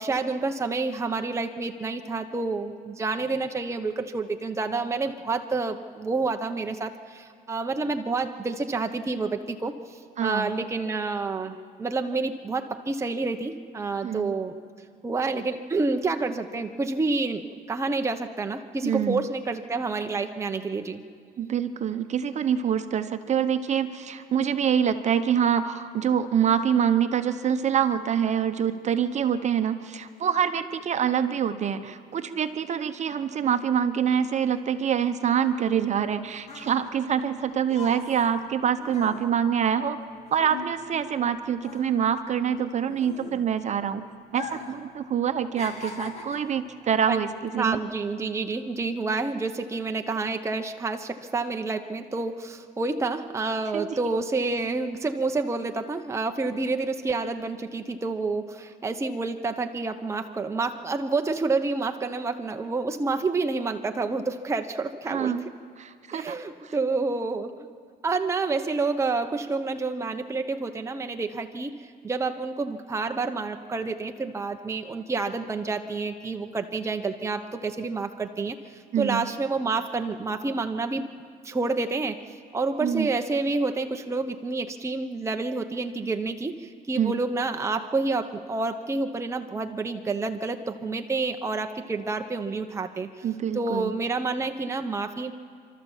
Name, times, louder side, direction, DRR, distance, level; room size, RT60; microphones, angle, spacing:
voice 1, 0.0-14.6 15.0-21.0 47.1-47.2 47.6-65.3 66.1-67.5 68.0-81.1 81.4-82.2 82.5-93.2 93.5-95.3, right 3 dB, 15° right, 5 dB, 0.9 m, -29 dB
voice 2, 10.2-10.5 14.0-14.3 18.8-19.2 21.4-40.0 40.3-44.0 44.3-47.8 53.7-53.9 65.1-65.4 65.8-66.4 66.6-66.7 78.9-79.2 82.8-83.1 87.0-87.2 93.2-93.9, right 8 dB, 45° right, 9 dB, 1.0 m, -25 dB
sound 1, 36.0-41.3 41.6-43.7 44.3-44.8 45.1-46.6 47.3-47.5, left 3 dB, 40° left, 2.6 m, -41 dB
28.5 x 13.0 x 7.3 m, 2.2 s
cardioid pair, 110°, 17 cm